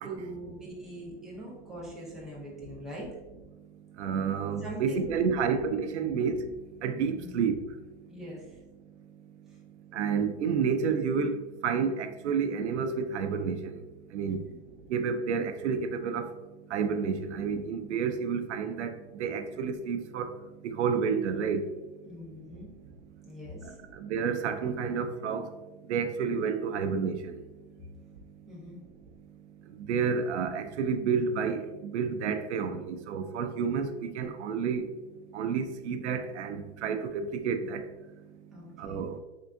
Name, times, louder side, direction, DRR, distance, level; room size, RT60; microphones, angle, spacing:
voice 1, 0.0-3.1 4.6-5.3 6.0-6.2 7.1-7.3 8.1-8.5 14.2-14.5 22.1-22.7 23.2-23.8 28.5-28.8 38.5-39.1, equal, ahead, -7 dB, 0.7 m, -42 dB
voice 2, 4.0-6.5 6.8-7.6 9.9-11.4 11.6-13.8 14.1-14.4 14.9-16.3 16.7-20.3 20.6-21.6 23.6-25.5 25.9-27.4 29.8-34.9 35.3-37.9 38.8-39.2, right 6 dB, 85° right, 8 dB, 0.5 m, -30 dB
3.6 x 3.4 x 2.6 m, 1.1 s
supercardioid pair, 150°, 34 cm